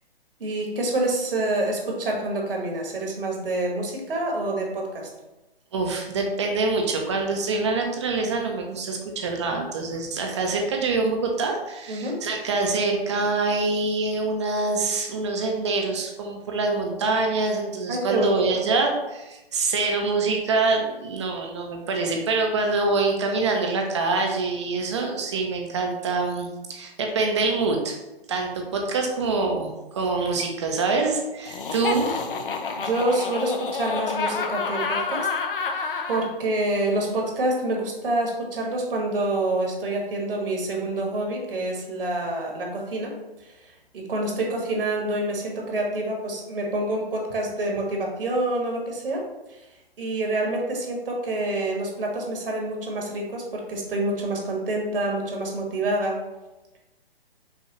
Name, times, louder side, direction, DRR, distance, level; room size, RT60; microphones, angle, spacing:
voice 1, 0.4-5.1 11.9-12.2 17.9-18.3 32.8-35.3 36.1-43.1 43.4-49.6 50.0-56.2, right 2 dB, 65° right, 0 dB, 1.4 m, -27 dB
voice 2, 5.7-28.0 28.3-32.1, right 3 dB, 30° right, 2 dB, 0.5 m, -25 dB
Laughter, 31.5-36.3, left 4 dB, 60° left, 0.6 m, -28 dB
5.5 x 2.4 x 3.0 m, 1.0 s
hypercardioid pair, 145°, 31 cm